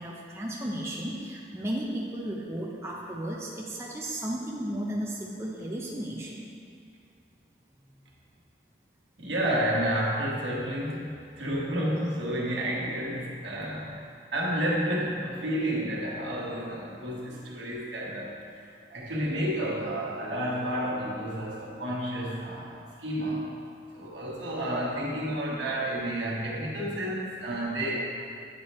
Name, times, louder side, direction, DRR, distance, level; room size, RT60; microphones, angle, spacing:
voice 1, 0.0-6.5 7.9-8.0, right 1 dB, 15° right, -3 dB, 0.5 m, -34 dB
voice 2, 9.2-23.5 23.9-28.1, right 1 dB, 80° right, -4 dB, 1.2 m, -31 dB
8.7 x 3.3 x 4.2 m, 2.4 s
head